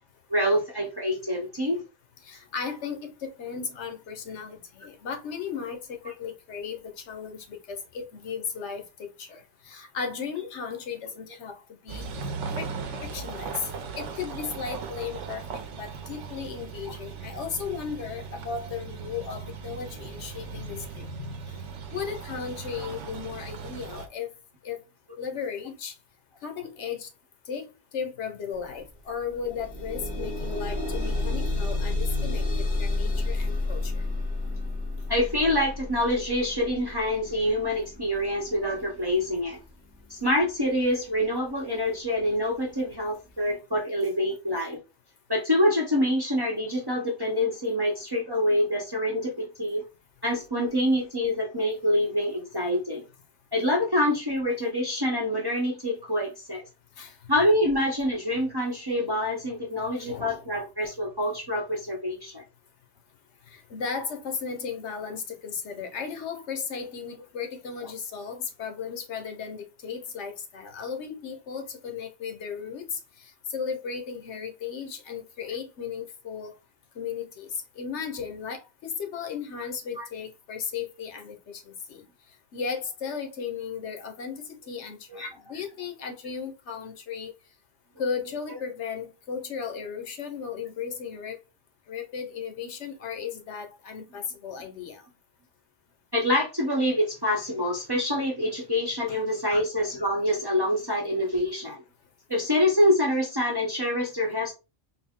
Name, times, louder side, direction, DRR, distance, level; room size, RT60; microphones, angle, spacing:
voice 1, 0.3-1.8 16.9-17.0 35.1-39.6 40.1-44.8 45.3-49.8 50.2-53.0 53.5-56.6 57.3-62.4 80.0-80.1 85.1-85.3 96.1-101.8 102.3-104.5, left 1 dB, 25° right, 0.8 m, -26 dB
voice 2, 2.2-12.1 12.6-12.7 13.0-21.4 21.9-24.3 24.6-24.8 25.2-25.9 26.4-27.1 27.5-33.9 57.0-57.2 60.0-60.5 63.5-76.5 76.9-82.0 82.5-87.3 88.0-91.4 91.9-95.0 99.1-99.2 99.5-99.6, left 6 dB, 75° left, 1.0 m, -35 dB
sound 1, 11.9-24.1, right 5 dB, 85° right, 1.0 m, -38 dB
sound 2, 28.6-28.7 29.1-40.1 40.9-41.0 41.5-41.6, left 2 dB, 60° left, 1.4 m, -31 dB
3.9 x 2.0 x 3.5 m
omnidirectional pair, 1.2 m